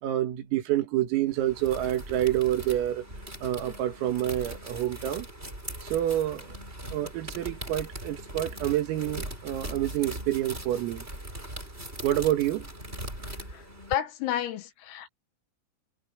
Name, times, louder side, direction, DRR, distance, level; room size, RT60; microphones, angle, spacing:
voice 1, 0.0-3.1 3.4-5.3 5.8-6.6 6.9-11.1 12.0-12.7, right 13 dB, 85° right, 4.8 m, -28 dB
sound 1, 1.3-13.9, right 1 dB, 10° right, 7.8 m, -40 dB
voice 2, 13.9-15.1, left 11 dB, 90° left, 4.6 m, -30 dB
omnidirectional pair, 5.9 m